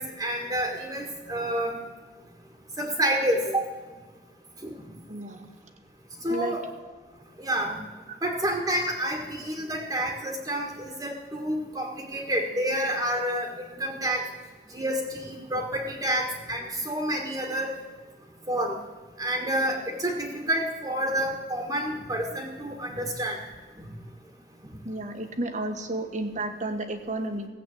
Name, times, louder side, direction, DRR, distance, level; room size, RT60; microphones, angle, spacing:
voice 1, 0.0-1.8 2.8-3.6 4.6-4.7 6.2-6.6 7.4-7.8 8.2-14.2 14.7-17.7 18.5-18.8 19.2-23.4, right 1 dB, 20° right, 1 dB, 1.7 m, -29 dB
voice 2, 5.1-5.5 6.3-6.6 8.1-8.2 24.8-27.5, right 2 dB, 45° right, 7 dB, 1.4 m, -32 dB
16.5 x 8.3 x 7.8 m, 1.4 s
head